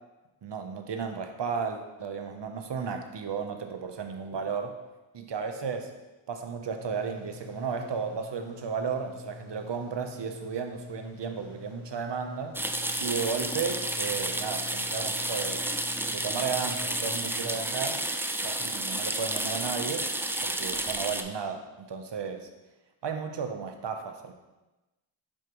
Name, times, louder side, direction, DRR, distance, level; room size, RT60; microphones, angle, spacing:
voice 1, 0.4-4.8 5.1-5.9 6.3-12.6 13.0-15.7 16.1-18.1 18.4-20.1 20.4-22.5 23.0-24.3, right 6 dB, 60° right, 6 dB, 0.8 m, -34 dB
sound 1, 6.8-17.6, left 5 dB, 75° left, 1.0 m, -47 dB
sound 2, 12.5-21.2, right 1 dB, 5° right, 0.3 m, -31 dB
6.2 x 5.0 x 3.0 m, 1.1 s
cardioid pair, 40°, 49 cm